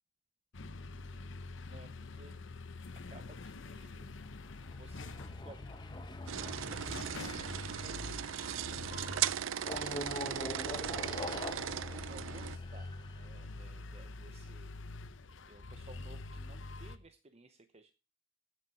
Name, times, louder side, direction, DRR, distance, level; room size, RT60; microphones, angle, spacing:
sound 1, 0.5-17.0, left 3 dB, 70° left, 0.9 m, -46 dB
voice 1, 0.8-1.4 1.7-2.4 2.9-4.2 4.7-5.6 6.5-8.1 8.4-10.5 11.0-14.7 15.5-17.9, right 3 dB, 35° right, 9 dB, 0.8 m, -58 dB
sound 2, 4.2-8.8 9.6-13.2, left 2 dB, 25° left, 0.9 m, -45 dB
sound 3, 6.3-12.6, right 10 dB, 75° right, 0.5 m, -38 dB
15.0 x 6.6 x 5.6 m, 0.32 s
head